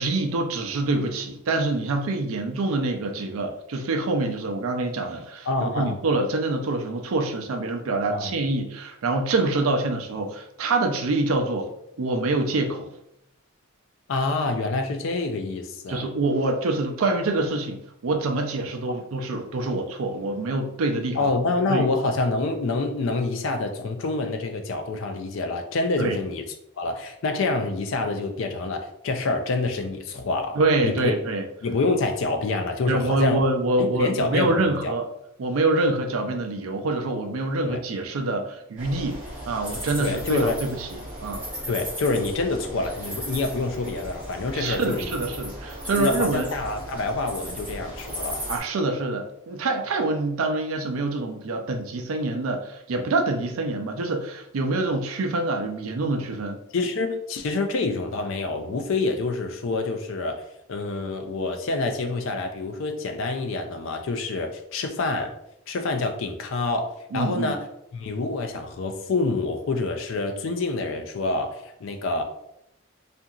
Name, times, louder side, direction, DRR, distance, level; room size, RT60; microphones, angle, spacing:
voice 1, 0.0-11.7 12.0-12.9 15.9-21.2 21.7-21.9 26.0-26.2 30.6-31.4 32.9-35.0 35.4-41.4 44.5-46.5 48.5-56.6 67.1-67.5, right 2 dB, 75° right, 4 dB, 0.4 m, -26 dB
voice 2, 5.5-6.0 8.1-8.3 14.1-16.1 21.1-26.4 26.8-30.6 30.8-31.1 31.6-33.4 33.8-34.9 37.6-37.8 40.0-40.6 41.7-45.2 46.0-48.4 56.7-60.4 60.7-65.3 65.7-67.6 67.9-72.2, left 3 dB, 60° left, 5 dB, 0.4 m, -27 dB
sound 1, 38.8-48.6, equal, 5° right, 1.0 m, -36 dB
2.7 x 2.5 x 2.3 m, 0.79 s
head